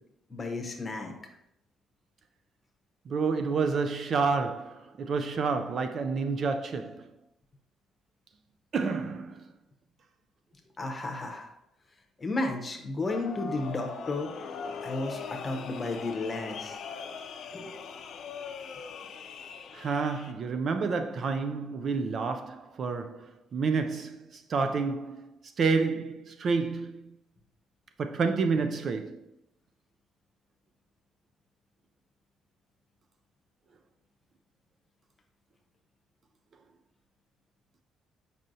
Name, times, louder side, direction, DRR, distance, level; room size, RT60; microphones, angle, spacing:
voice 1, 0.3-1.1 10.8-11.5 12.2-14.3 14.8-16.8 17.5-17.7, left 2 dB, 20° left, 0.8 m, -33 dB
voice 2, 3.1-7.1 8.7-9.4 19.7-25.3 25.6-27.2 28.0-29.2, right 4 dB, 40° right, 0.3 m, -29 dB
sound 1, 13.1-20.3, left 5 dB, 50° left, 0.5 m, -41 dB
7.4 x 5.4 x 2.6 m
cardioid pair, 170°, 0 cm